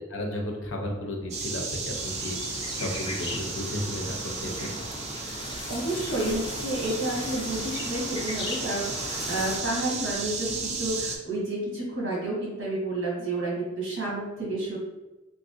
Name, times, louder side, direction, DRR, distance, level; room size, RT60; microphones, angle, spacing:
voice 1, 0.0-4.7, left 1 dB, 75° left, 1 dB, 0.7 m, -34 dB
sound 1, 1.3-11.2, right 4 dB, 35° right, 0.4 m, -34 dB
sound 2, 1.9-9.6, left 2 dB, 25° left, 0.4 m, -38 dB
voice 2, 5.7-14.8, right 2 dB, 80° right, -5 dB, 1.3 m, -30 dB
3.2 x 2.7 x 2.5 m, 1.1 s
head